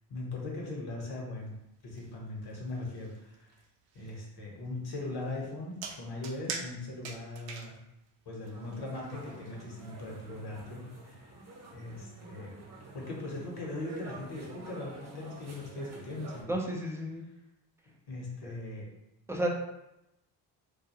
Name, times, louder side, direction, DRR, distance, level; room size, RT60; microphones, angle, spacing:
voice 1, 0.1-1.5 1.8-3.5 3.9-7.7 8.2-11.4 11.7-12.5 12.9-16.6 18.1-18.8, left 2 dB, 50° left, -2 dB, 1.1 m, -40 dB
sound 1, 1.5-10.2, right 5 dB, 65° right, 0.6 m, -46 dB
sound 2, 8.4-16.4, right 3 dB, 30° right, 0.9 m, -49 dB
voice 2, 16.5-17.2 18.4-18.5 19.3-19.5, right 1 dB, 5° right, -1 dB, 0.4 m, -32 dB
2.4 x 2.2 x 2.9 m, 0.88 s
supercardioid pair, 65°, 49 cm